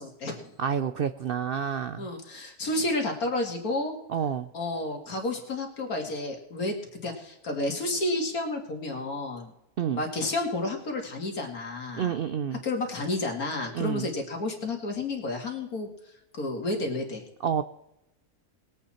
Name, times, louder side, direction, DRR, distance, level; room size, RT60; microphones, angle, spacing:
voice 1, 0.0-0.5 2.0-3.9 4.5-9.5 9.9-12.1 12.6-15.9 16.4-17.2, left 2 dB, 75° left, 2 dB, 2.7 m, -31 dB
voice 2, 0.6-2.1 4.1-4.5 9.8-10.0 11.9-12.6 13.7-14.1 17.4-17.6, right 8 dB, 70° right, 10 dB, 0.5 m, -29 dB
21.0 x 8.3 x 4.3 m, 0.87 s
omnidirectional pair, 1.6 m